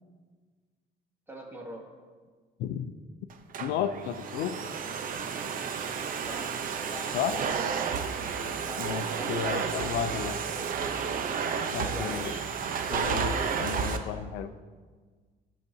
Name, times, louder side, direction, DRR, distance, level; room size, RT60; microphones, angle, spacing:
voice 1, 1.3-1.8 6.2-6.6 6.9-7.9 8.6-9.8 10.5-10.7 11.8-12.5, right 1 dB, 15° right, -1 dB, 2.0 m, -43 dB
voice 2, 2.6-2.9 3.6-4.6 7.1-7.5 8.8-10.4 11.7-12.3 12.9-14.6, left 8 dB, 85° left, 10 dB, 0.6 m, -33 dB
Domestic sounds home sounds, 3.3-14.0, right 6 dB, 55° right, 0.8 m, -32 dB
16.0 x 6.7 x 2.8 m, 1.5 s
cardioid pair, 110°, 17 cm